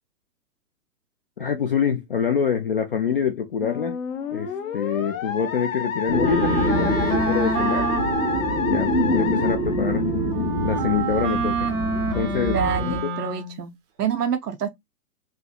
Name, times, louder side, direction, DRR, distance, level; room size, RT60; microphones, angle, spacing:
voice 1, 1.4-4.0 4.3-7.9 8.6-10.1 10.6-11.7 12.1-13.1, left 7 dB, 40° left, 0.4 m, -26 dB
Musical instrument, 3.6-10.5, left 7 dB, 60° left, 1.0 m, -30 dB
sound 1, 6.1-13.0, equal, 90° left, 1.8 m, -26 dB
Wind instrument woodwind instrument, 6.2-13.6, right 4 dB, 20° right, 0.6 m, -28 dB
voice 2, 12.5-14.7, right 8 dB, 80° right, 0.7 m, -27 dB
4.4 x 2.6 x 2.2 m
figure-of-eight pair, 120°, 46 cm